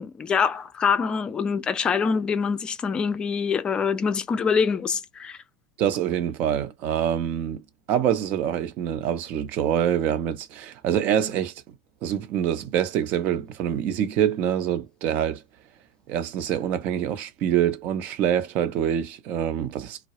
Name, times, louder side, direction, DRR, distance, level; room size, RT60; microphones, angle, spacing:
voice 1, 0.0-5.4, left 6 dB, 25° left, 0.4 m, -25 dB
voice 2, 5.8-7.6 7.9-11.8 12.0-15.4 16.1-20.0, right 10 dB, 50° right, 0.6 m, -25 dB
2.2 x 2.0 x 2.9 m
supercardioid pair, 115°, 4 cm